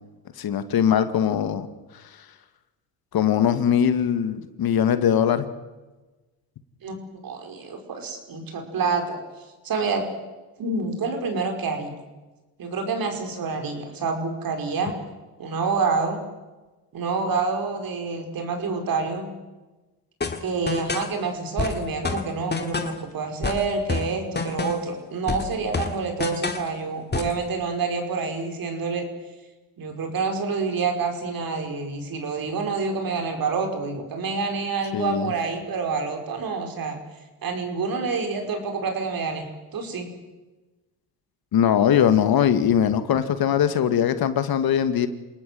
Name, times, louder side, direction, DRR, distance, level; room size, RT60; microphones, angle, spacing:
voice 1, 0.4-1.7 3.1-5.5 34.9-35.3 41.5-45.1, left 9 dB, 60° left, 11 dB, 2.1 m, -21 dB
voice 2, 7.2-9.2 9.6-10.0 10.6-11.9 12.6-14.9 15.4-16.2 16.9-19.3 20.4-29.1 29.8-37.0 37.4-40.1, right 4 dB, 55° right, 5 dB, 5.6 m, -27 dB
sound 1, 20.2-21.1 21.6-23.0 23.4-24.9 25.3-26.7 27.1-27.4, left 4 dB, 25° left, 2.6 m, -28 dB
28.0 x 18.5 x 7.9 m, 1.2 s
cardioid pair, 90°, 41 cm